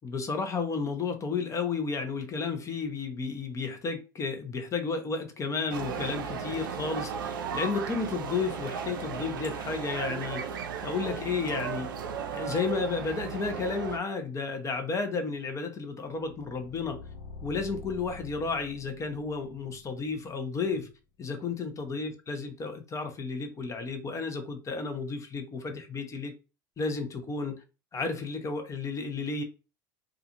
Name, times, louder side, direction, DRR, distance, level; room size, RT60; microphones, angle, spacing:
voice 1, 0.0-10.5 10.8-11.9 12.3-17.0 17.4-20.9 21.2-26.3 26.8-27.6 27.9-29.4, left 4 dB, 30° left, 0.7 m, -32 dB
sound 1, 5.7-14.0, right 6 dB, 85° right, 0.4 m, -35 dB
sound 2, 16.0-21.0, left 4 dB, 70° left, 0.8 m, -47 dB
2.4 x 2.3 x 2.8 m
hypercardioid pair, 80°, 11 cm